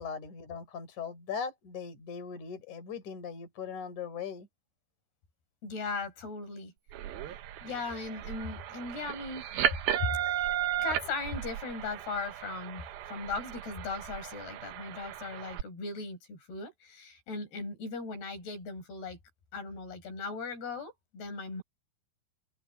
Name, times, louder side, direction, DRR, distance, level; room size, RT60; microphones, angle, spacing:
voice 1, 0.0-4.5, left 6 dB, 45° left, 6.0 m, -39 dB
voice 2, 5.6-6.7 7.6-9.5 10.0-19.2 19.5-21.6, left 4 dB, 70° left, 8.4 m, -38 dB
sound 1, 6.9-15.6, right 11 dB, 70° right, 2.8 m, -35 dB
open air
omnidirectional pair, 4.8 m